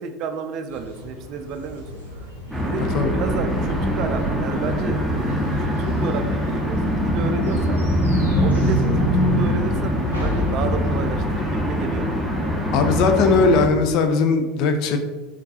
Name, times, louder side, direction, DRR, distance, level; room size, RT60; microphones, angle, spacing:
voice 1, 0.0-1.8 2.2-2.3 2.6-5.1 5.6-7.8 8.3-12.5, right 5 dB, 45° right, 7 dB, 0.3 m, -31 dB
sound 1, 0.7-11.1, left 2 dB, 85° left, 0.9 m, -36 dB
sound 2, 2.5-13.7, equal, 5° right, 0.7 m, -22 dB
voice 2, 12.7-15.0, left 4 dB, 50° left, 7 dB, 0.4 m, -18 dB
3.6 x 3.6 x 2.7 m, 1.3 s
figure-of-eight pair, 75°, 0 cm